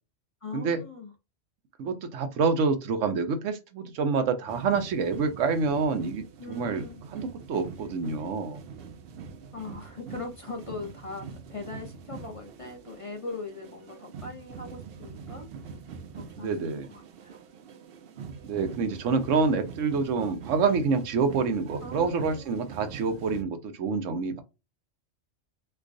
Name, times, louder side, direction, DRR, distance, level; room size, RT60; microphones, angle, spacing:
voice 1, 0.4-1.1 6.4-7.0 9.5-15.7 16.2-17.4 21.8-22.6, left 3 dB, 35° left, 0.6 m, -41 dB
voice 2, 1.8-6.8 7.1-8.6 16.4-16.9 18.4-24.4, right 4 dB, 90° right, 1.1 m, -27 dB
sound 1, 4.5-23.4, right 6 dB, 60° right, 0.7 m, -44 dB
4.4 x 2.3 x 2.5 m
omnidirectional pair, 1.2 m